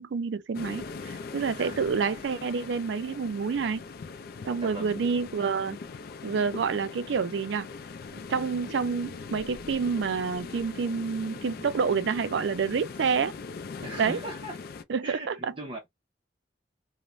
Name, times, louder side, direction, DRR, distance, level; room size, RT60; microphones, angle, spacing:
voice 1, 0.0-3.8 4.5-5.8 6.2-7.7 8.3-13.3 14.0-14.2 14.9-15.5, right 5 dB, 75° right, 0.4 m, -28 dB
sound 1, 0.5-14.8, left 4 dB, 55° left, 0.3 m, -41 dB
voice 2, 1.6-1.9 4.6-5.0 13.8-14.6 15.0-15.9, right 1 dB, 30° right, 0.6 m, -39 dB
2.4 x 2.0 x 3.0 m
head